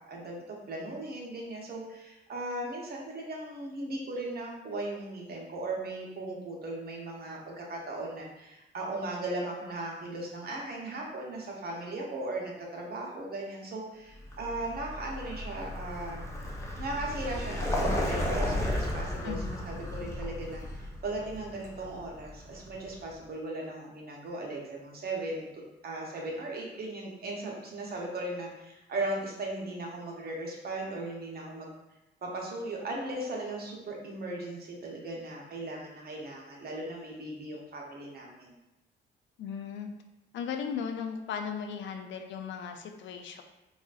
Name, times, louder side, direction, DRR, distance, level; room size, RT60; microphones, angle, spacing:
voice 1, 0.1-16.3 16.8-25.5 25.8-31.7 32.2-38.6, right 2 dB, 50° right, -1 dB, 0.9 m, -37 dB
Vehicle, 14.2-23.0, left 1 dB, 15° left, 0.6 m, -34 dB
voice 2, 19.2-19.6 39.4-39.9 40.3-43.4, left 6 dB, 70° left, 6 dB, 0.4 m, -36 dB
4.0 x 2.4 x 2.4 m, 0.95 s
cardioid pair, 90°, 20 cm